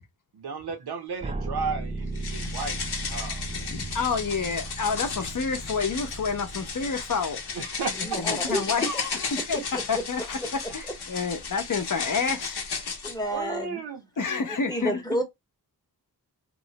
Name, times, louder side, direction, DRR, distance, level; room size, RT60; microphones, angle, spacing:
voice 1, 0.3-2.8 3.1-3.7 7.5-8.2 13.3-14.0, right 4 dB, 80° right, 0.8 m, -34 dB
sound 1, 1.2-8.1, right 2 dB, 15° right, 0.3 m, -37 dB
sound 2, 2.1-13.2, left 5 dB, 90° left, 0.8 m, -34 dB
voice 2, 3.2-7.4 8.2-9.6 9.9-10.4 10.7-12.6 14.2-15.0, left 5 dB, 55° left, 0.6 m, -29 dB
voice 3, 8.0-9.0 9.5-10.0 13.0-13.8 14.7-15.2, equal, 10° left, 0.7 m, -30 dB
3.0 x 2.1 x 2.7 m
wide cardioid pair, 105°, 38 cm